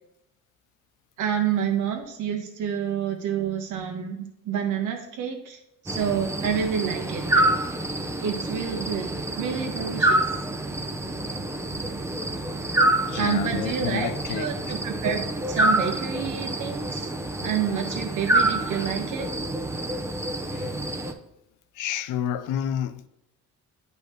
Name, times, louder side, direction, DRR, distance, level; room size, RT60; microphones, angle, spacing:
voice 1, 1.2-5.6 5.8-7.5 8.2-9.1 9.3-10.2 13.2-17.1 17.4-19.3, right 8 dB, 85° right, 1.3 m, -28 dB
sound 1, 5.9-21.1, right 1 dB, 10° right, 0.7 m, -27 dB
voice 2, 13.0-14.7 20.5-20.8 21.7-23.1, left 10 dB, 85° left, 0.5 m, -30 dB
9.1 x 5.2 x 3.1 m
cardioid pair, 90°, 30 cm